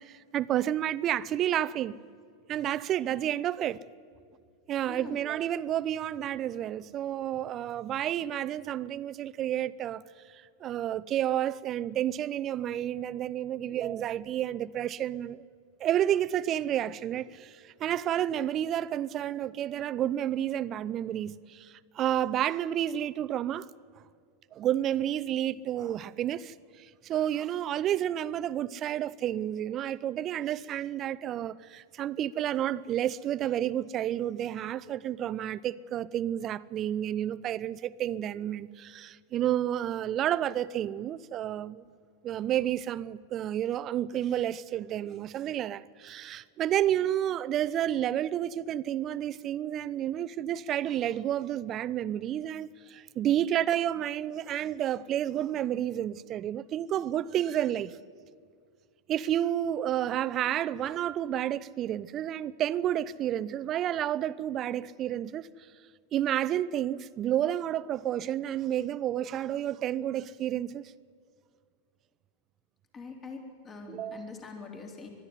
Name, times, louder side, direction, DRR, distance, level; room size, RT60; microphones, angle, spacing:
voice 1, 0.0-2.0 2.5-3.8 4.7-10.0 10.6-15.4 15.8-23.7 24.5-41.8 42.2-57.9 59.1-65.5 66.1-70.8 73.8-74.3, right 11 dB, 35° right, 0.6 m, -30 dB
voice 2, 4.9-5.2 13.9-14.0 72.9-75.1, left 4 dB, 30° left, 3.8 m, -43 dB
21.0 x 13.0 x 9.8 m
hypercardioid pair, 95°, 0 cm